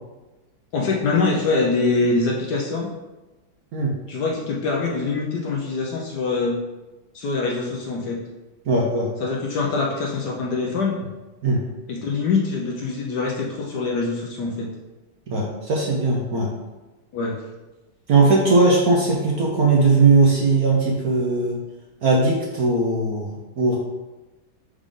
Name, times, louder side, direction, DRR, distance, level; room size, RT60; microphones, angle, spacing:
voice 1, 0.7-2.9 4.1-6.6 7.1-8.2 9.2-10.9 11.9-14.7 17.1-17.3, left 3 dB, 65° left, -2 dB, 1.1 m, -24 dB
voice 2, 8.7-9.1 11.4-11.6 15.3-16.5 18.1-21.6 22.0-23.8, right 3 dB, 60° right, -2 dB, 1.0 m, -19 dB
5.1 x 5.0 x 3.7 m, 1.1 s
omnidirectional pair, 2.3 m